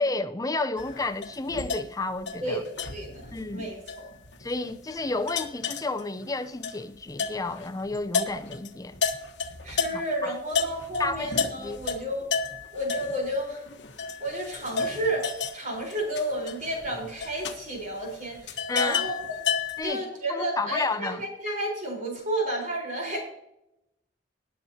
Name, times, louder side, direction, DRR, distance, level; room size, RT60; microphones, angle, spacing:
voice 1, 0.0-2.6 3.3-3.7 4.4-9.0 9.9-10.3 11.0-11.3 11.6-11.8 18.7-19.0 19.8-20.0 20.3-21.2, left 3 dB, 20° left, 0.6 m, -31 dB
sound 1, 0.8-10.2 10.5-19.8, left 5 dB, 70° left, 1.2 m, -32 dB
voice 2, 2.4-4.1 9.6-12.3 12.7-13.6 14.2-19.4 19.8-23.2, right 1 dB, 45° right, 4.3 m, -32 dB
19.5 x 8.1 x 2.8 m
head